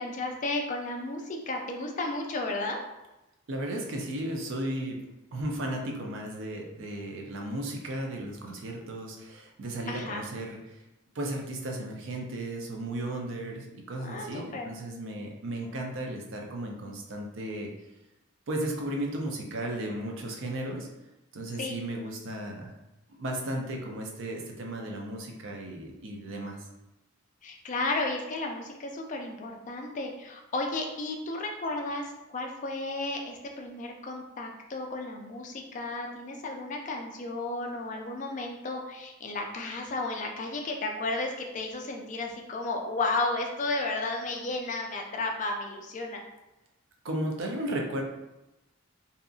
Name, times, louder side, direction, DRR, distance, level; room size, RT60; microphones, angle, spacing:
voice 1, 0.0-2.8 9.9-10.3 14.0-14.7 21.6-21.8 27.4-46.2, left 2 dB, 35° left, 2 dB, 0.4 m, -33 dB
voice 2, 3.5-5.0 5.3-10.6 11.1-17.7 18.5-20.9 21.3-22.7 23.1-26.6 47.0-48.0, right 1 dB, 60° right, 1 dB, 0.5 m, -35 dB
2.7 x 2.5 x 2.4 m, 0.96 s
head